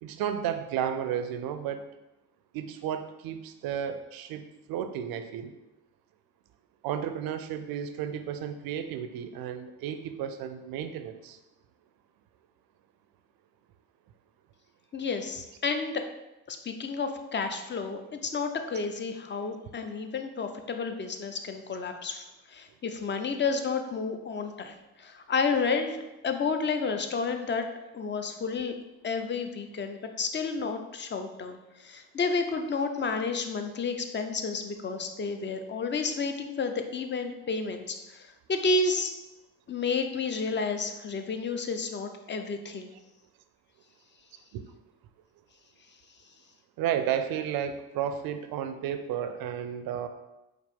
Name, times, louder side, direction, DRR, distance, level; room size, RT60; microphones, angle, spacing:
voice 1, 0.0-1.9 2.5-5.5 6.8-11.4 44.5-44.6 46.8-50.1, right 9 dB, 65° right, 9 dB, 0.5 m, -33 dB
voice 2, 14.9-16.1 16.5-26.0 26.2-27.6 27.9-28.8 29.0-39.1 39.7-42.9, left 4 dB, 30° left, 6 dB, 0.5 m, -31 dB
4.9 x 2.0 x 3.5 m, 0.98 s
supercardioid pair, 55°, 39 cm